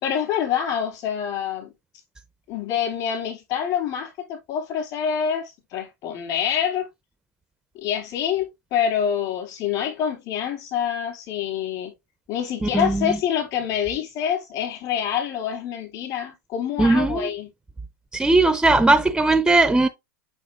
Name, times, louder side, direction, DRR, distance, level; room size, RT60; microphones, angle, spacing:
voice 1, 0.0-1.7 2.5-6.9 7.8-11.9 12.3-17.5, left 8 dB, 50° left, 3.9 m, -26 dB
voice 2, 12.6-13.2 16.8-17.3 18.1-19.9, right 2 dB, 10° right, 0.4 m, -18 dB
6.4 x 6.2 x 2.4 m
hypercardioid pair, 100°, 9 cm